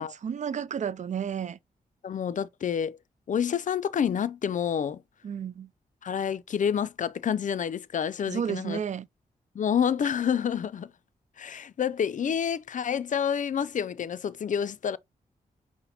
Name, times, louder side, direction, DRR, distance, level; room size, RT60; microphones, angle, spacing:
voice 1, 0.0-1.6 5.2-5.7 8.3-9.1, right 8 dB, 50° right, 0.4 m, -32 dB
voice 2, 2.0-3.0 3.3-5.0 6.0-8.8 9.5-10.9 11.4-15.0, left 8 dB, 55° left, 0.4 m, -28 dB
5.6 x 2.1 x 4.1 m
cardioid pair, 60°, 16 cm